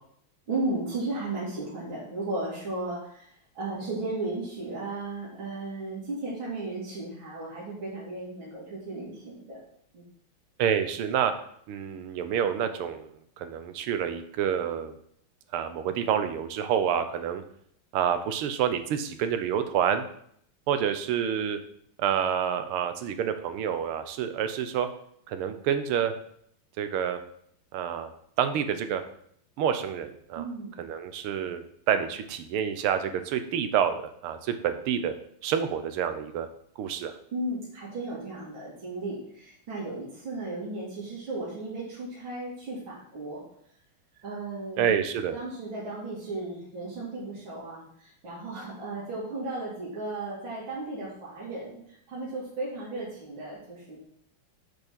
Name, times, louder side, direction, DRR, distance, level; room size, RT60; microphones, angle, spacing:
voice 1, 0.5-3.3 3.5-9.6 9.9-10.0 30.4-30.7 37.3-43.4 44.2-44.9 45.3-54.0, right 2 dB, 65° right, -7 dB, 3.2 m, -35 dB
voice 2, 10.6-11.3 11.7-13.1 13.4-14.9 15.5-17.4 17.9-20.0 20.7-21.6 22.0-24.9 25.3-26.1 26.8-27.2 27.7-28.1 28.4-29.0 29.6-30.4 30.8-34.0 34.2-35.2 35.4-36.5 36.8-37.1 44.8-45.3, right 8 dB, 80° right, 9 dB, 1.7 m, -28 dB
7.2 x 5.1 x 6.1 m, 0.67 s
omnidirectional pair, 2.4 m